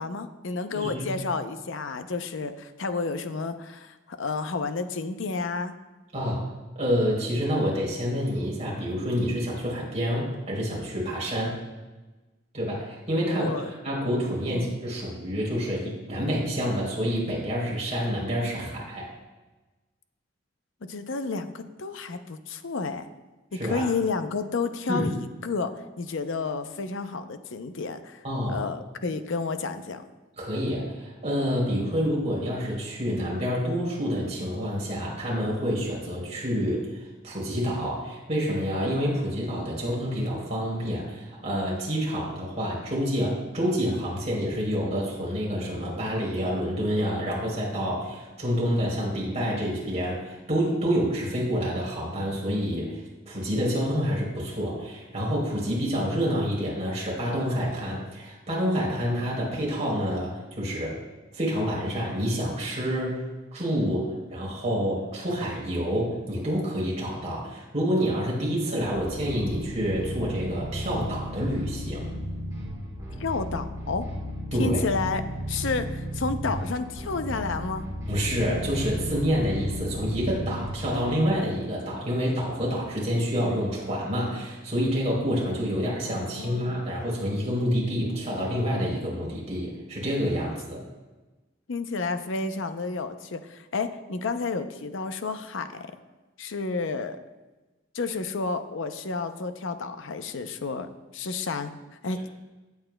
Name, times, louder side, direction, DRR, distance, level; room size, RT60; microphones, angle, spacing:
voice 1, 0.0-5.7 13.3-13.7 14.5-14.7 20.8-23.1 23.5-28.2 28.5-30.0 73.2-74.1 74.6-75.2 75.5-77.9 86.0-86.8 91.7-95.9 96.4-97.2 97.9-101.7 102.0-102.3, left 4 dB, 70° left, 9 dB, 0.6 m, -31 dB
voice 2, 0.7-1.2 6.1-6.4 6.8-11.6 12.5-19.1 23.5-23.8 24.9-25.1 28.2-28.6 30.4-61.0 61.3-63.2 63.5-72.1 74.5-74.8 78.1-90.8, equal, 35° right, -4 dB, 3.5 m, -28 dB
sound 1, 68.8-81.2, equal, 20° right, 2.2 m, -34 dB
16.5 x 8.2 x 2.2 m, 1.2 s
head